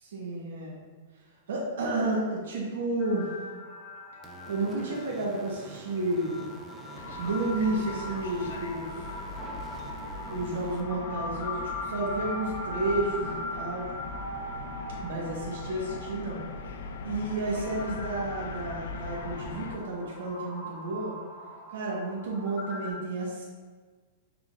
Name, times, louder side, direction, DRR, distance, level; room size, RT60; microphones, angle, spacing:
voice 1, 0.1-0.8 1.5-3.3 4.5-6.4 7.2-8.9 10.3-13.8 15.0-16.4 17.0-21.2 21.7-23.4, right 2 dB, 75° right, -3 dB, 0.9 m, -31 dB
sound 1, 3.0-22.9, left 1 dB, 20° left, 0.8 m, -40 dB
sound 2, 4.2-10.8, right 2 dB, 15° right, 0.4 m, -47 dB
sound 3, 6.9-19.8, left 4 dB, 70° left, 0.4 m, -41 dB
5.9 x 3.4 x 2.4 m, 1.5 s
supercardioid pair, 160°, 0 cm